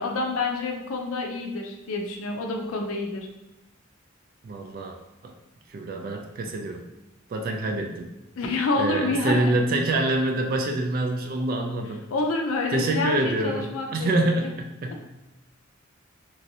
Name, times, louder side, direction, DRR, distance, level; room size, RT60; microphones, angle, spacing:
voice 1, 0.0-3.3 8.4-9.5 12.1-14.5, left 3 dB, 90° left, 2 dB, 0.4 m, -28 dB
voice 2, 4.4-5.0 5.2-5.3 5.7-6.8 7.3-8.1 8.8-12.0 12.7-14.5 14.8-15.0, right 2 dB, 45° right, 3 dB, 0.3 m, -26 dB
3.0 x 2.6 x 2.7 m, 0.98 s
head